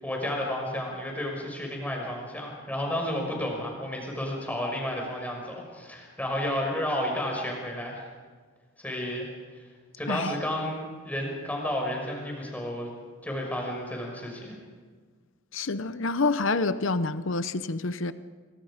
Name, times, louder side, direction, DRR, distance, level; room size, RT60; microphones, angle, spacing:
voice 1, 0.0-8.1 8.8-9.7 10.0-12.9 13.2-14.6, left 1 dB, 5° left, 5.8 m, -32 dB
voice 2, 15.5-18.1, left 3 dB, 60° left, 0.9 m, -27 dB
26.5 x 24.5 x 5.1 m
head